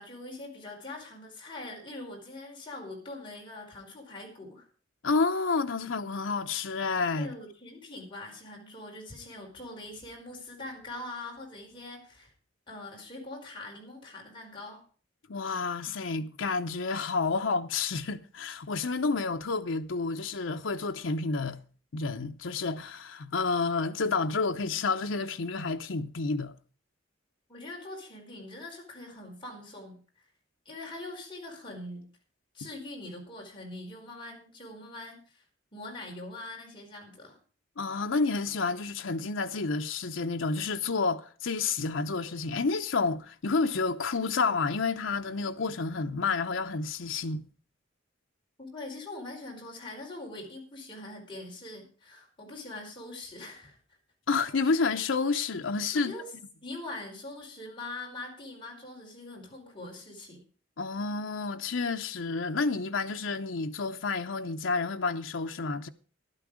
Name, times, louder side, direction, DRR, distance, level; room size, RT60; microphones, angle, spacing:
voice 1, 0.0-4.7 7.1-12.3 12.7-14.8 27.5-30.0 30.6-32.0 32.5-35.4 35.7-37.4 48.6-53.8 55.9-56.3 56.6-60.4, left 2 dB, 25° left, 5.0 m, -43 dB
voice 2, 5.0-7.3 15.3-21.6 21.9-26.5 37.8-47.4 54.3-56.1 60.8-65.9, left 4 dB, 75° left, 0.8 m, -30 dB
13.0 x 11.5 x 4.9 m
head